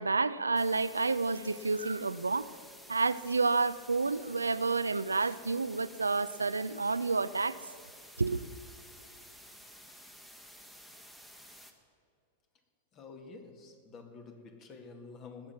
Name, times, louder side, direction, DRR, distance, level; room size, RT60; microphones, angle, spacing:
voice 1, 0.0-2.5 2.9-7.6 8.2-8.5, right 4 dB, 90° right, 0.4 m, -30 dB
sound 1, 0.5-11.7, equal, 5° left, 1.4 m, -53 dB
voice 2, 12.9-15.5, left 4 dB, 35° left, 1.9 m, -49 dB
19.5 x 7.6 x 5.8 m
figure-of-eight pair, 95°, 0 cm